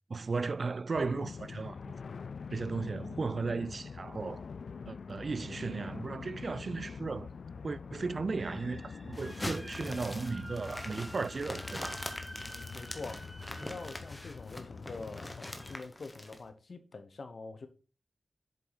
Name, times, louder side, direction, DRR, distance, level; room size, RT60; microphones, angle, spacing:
voice 1, 0.1-1.9 2.5-4.4 4.9-7.3 7.6-11.9, right 4 dB, 55° right, 0.4 m, -35 dB
sound 1, 0.9-15.8, left 5 dB, 80° left, 0.4 m, -45 dB
sound 2, 8.4-14.5 15.5-15.8, right 1 dB, 15° right, 2.6 m, -50 dB
sound 3, 9.1-16.4, left 1 dB, 15° left, 1.3 m, -43 dB
voice 2, 12.7-13.2 13.5-17.7, left 3 dB, 60° left, 1.1 m, -45 dB
8.0 x 7.3 x 4.1 m
wide cardioid pair, 120°, 0 cm